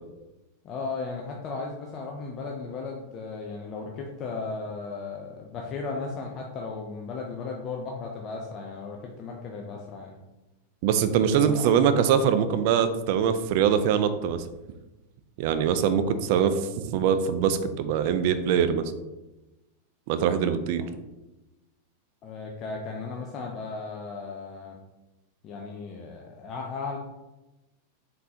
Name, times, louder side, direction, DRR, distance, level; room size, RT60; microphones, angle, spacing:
voice 1, 0.6-10.2 11.4-11.8 22.2-24.8 25.4-27.0, left 4 dB, 35° left, 0 dB, 0.5 m, -36 dB
voice 2, 10.8-14.4 15.4-18.8 20.1-20.8, right 8 dB, 60° right, 10 dB, 0.4 m, -23 dB
3.9 x 3.7 x 2.8 m, 1.0 s
hypercardioid pair, 120°, 0 cm